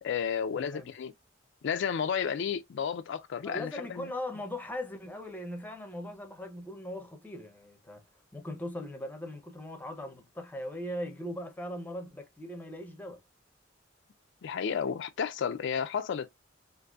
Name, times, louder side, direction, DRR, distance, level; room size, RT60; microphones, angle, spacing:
voice 1, 0.0-1.1 1.6-4.1 14.4-16.3, left 7 dB, 65° left, 0.4 m, -32 dB
voice 2, 0.6-0.9 3.4-8.0 8.3-13.2, left 1 dB, 10° left, 0.6 m, -39 dB
3.9 x 2.5 x 2.3 m
head